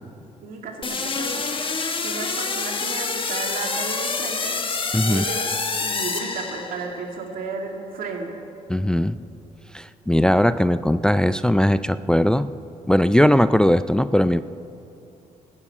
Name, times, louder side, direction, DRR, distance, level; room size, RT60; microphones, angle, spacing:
voice 1, 0.4-1.5 2.0-4.6 5.0-5.5 5.8-8.4, right 4 dB, 80° right, 2 dB, 2.1 m, -33 dB
sound 1, 0.8-7.0, left 4 dB, 35° left, 1.3 m, -27 dB
voice 2, 4.9-5.2 8.7-9.2 9.7-12.5 12.9-14.4, left 1 dB, 5° left, 13 dB, 0.4 m, -19 dB
12.5 x 9.8 x 8.7 m, 2.9 s
cardioid pair, 70°, 14 cm